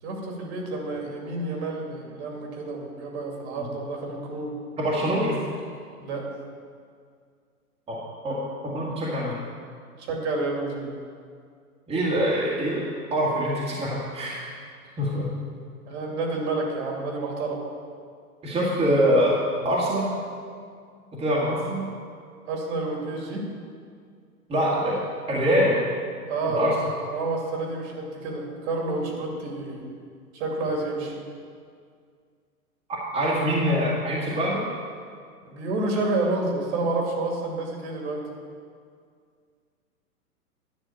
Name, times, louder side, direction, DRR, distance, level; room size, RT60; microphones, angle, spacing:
voice 1, 0.0-4.5 6.0-6.3 10.0-10.9 15.9-17.6 22.5-23.5 26.3-26.6 27.1-29.9 30.3-31.2 35.4-38.2, right 2 dB, 45° right, 0 dB, 2.5 m, -29 dB
voice 2, 4.8-5.4 7.9-9.4 11.9-14.4 15.0-15.3 18.4-20.1 21.1-21.9 24.5-25.0 25.3-25.9 26.5-26.8 32.9-34.6, equal, 15° right, -6 dB, 1.8 m, -24 dB
10.5 x 6.1 x 7.1 m, 2.1 s
hypercardioid pair, 125°, 47 cm